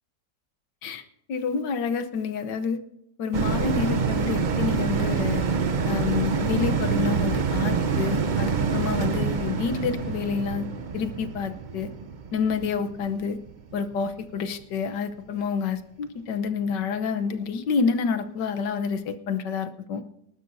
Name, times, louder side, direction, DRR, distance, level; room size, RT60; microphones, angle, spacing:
voice 1, 1.3-2.8 3.2-5.5 5.8-10.7 10.9-11.9 12.3-13.4 13.7-20.0, left 6 dB, 90° left, 9 dB, 1.6 m, -28 dB
sound 1, 3.3-14.0 14.4-14.5, right 5 dB, 50° right, 0.5 m, -26 dB
25.5 x 12.0 x 2.7 m, 0.79 s
omnidirectional pair, 1.8 m